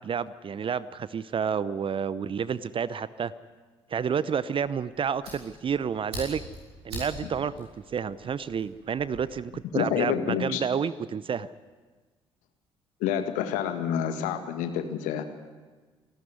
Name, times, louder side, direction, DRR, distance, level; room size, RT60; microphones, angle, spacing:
voice 1, 0.0-3.3 3.9-6.4 6.8-11.5, right 7 dB, 40° right, 17 dB, 0.8 m, -30 dB
Fire, 4.6-9.2, right 1 dB, 80° right, 6.3 m, -43 dB
voice 2, 9.7-10.6 13.0-15.2, left 9 dB, 65° left, 8 dB, 1.8 m, -28 dB
27.0 x 12.5 x 9.6 m, 1.4 s
figure-of-eight pair, 45°, 14 cm